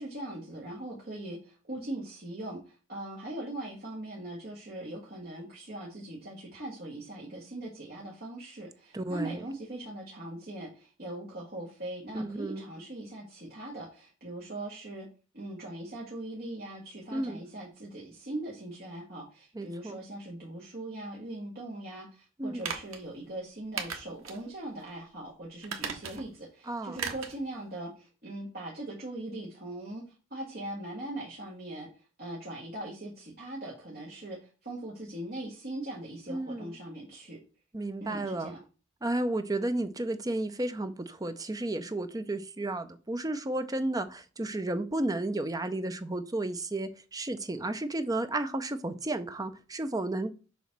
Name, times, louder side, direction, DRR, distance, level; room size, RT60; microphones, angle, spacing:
voice 1, 0.0-15.1 15.3-30.0 30.3-37.4 38.0-38.6, right 1 dB, 45° right, 1.7 m, -40 dB
voice 2, 8.9-9.4 12.1-12.7 17.1-17.4 19.5-20.0 22.4-22.7 26.7-27.0 36.3-36.7 37.7-38.5 39.0-50.3, right 2 dB, 20° right, 0.6 m, -32 dB
sound 1, 22.6-23.0 23.8-24.4 24.8-24.9 25.6-26.4 27.0-27.4 27.7-27.8, right 6 dB, 85° right, 1.4 m, -37 dB
7.2 x 3.1 x 5.9 m
head